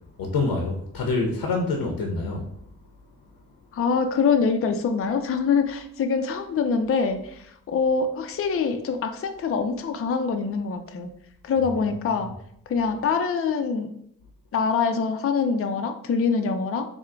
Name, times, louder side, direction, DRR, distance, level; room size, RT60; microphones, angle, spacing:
voice 1, 0.2-2.5 11.6-12.2, left 3 dB, 85° left, 2 dB, 0.7 m, -27 dB
voice 2, 3.7-11.1 11.4-12.3 12.7-13.9 14.5-16.9, left 5 dB, 40° left, 6 dB, 0.4 m, -24 dB
3.6 x 2.1 x 4.4 m, 0.72 s
cardioid pair, 80°, 35 cm